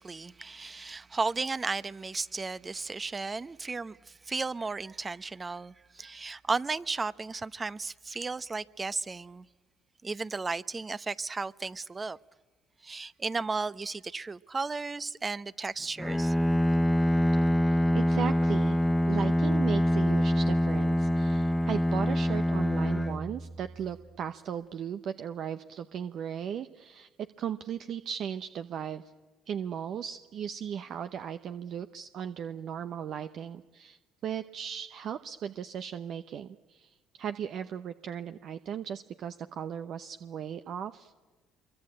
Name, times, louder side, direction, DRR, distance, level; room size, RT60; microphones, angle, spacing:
voice 1, 0.0-9.5 10.0-12.2 12.8-16.3, right 4 dB, 30° right, 0.8 m, -34 dB
Bowed string instrument, 16.0-24.0, equal, 10° left, 1.2 m, -25 dB
voice 2, 17.6-18.8 19.1-27.1 27.4-29.0 29.5-41.1, right 8 dB, 60° right, 0.9 m, -37 dB
25.0 x 23.0 x 8.9 m
supercardioid pair, 65°, 0 cm